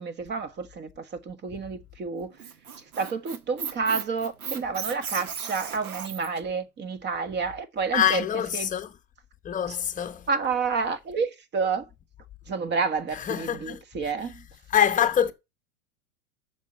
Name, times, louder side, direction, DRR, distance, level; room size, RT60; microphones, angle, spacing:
voice 1, 0.0-2.3 3.0-8.2 8.5-8.7 9.7-9.8 10.3-11.9 12.5-14.4, right 5 dB, 25° right, 1.5 m, -29 dB
Squeak, 2.2-6.4, right 7 dB, 90° right, 1.5 m, -36 dB
voice 2, 7.9-8.9 9.4-10.3 13.1-14.1 14.7-15.3, left 9 dB, 20° left, 1.0 m, -25 dB
7.3 x 6.6 x 7.5 m
hypercardioid pair, 115°, 43 cm